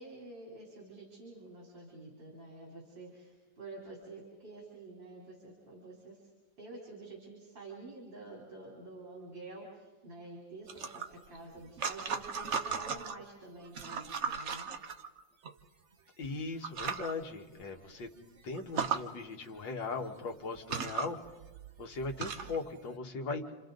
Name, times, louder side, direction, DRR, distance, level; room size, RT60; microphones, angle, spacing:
voice 1, 0.0-6.3 6.6-14.7, right 2 dB, 75° right, -2 dB, 4.4 m, -49 dB
sound 1, 10.7-13.2 13.7-15.5 16.2-16.3 16.6-17.1 17.6-17.7 18.0-18.1 18.6-19.0 20.0-20.1 20.6-22.6, right 6 dB, 45° right, 1.0 m, -37 dB
voice 2, 16.2-18.1 18.4-21.2 21.8-23.5, left 3 dB, 80° left, 2 dB, 2.3 m, -39 dB
29.5 x 27.0 x 4.0 m, 1.2 s
omnidirectional pair, 2.0 m